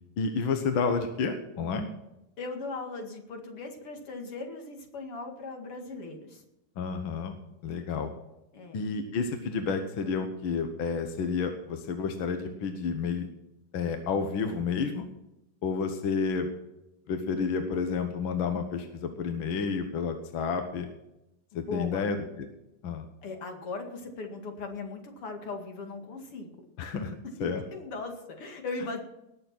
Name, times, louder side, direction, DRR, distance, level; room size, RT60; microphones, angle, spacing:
voice 1, 0.2-1.9 6.8-7.4 7.6-8.1 8.7-13.3 13.7-15.1 15.6-16.5 17.1-20.9 21.6-22.3 22.8-23.1 26.8-27.1 27.4-27.6, left 5 dB, 65° left, 6 dB, 1.9 m, -30 dB
voice 2, 2.4-6.4 8.5-8.8 21.5-22.1 23.2-26.5 27.0-27.1 27.7-29.0, left 3 dB, 85° left, 3 dB, 3.1 m, -38 dB
19.0 x 7.0 x 6.0 m, 0.89 s
omnidirectional pair, 2.4 m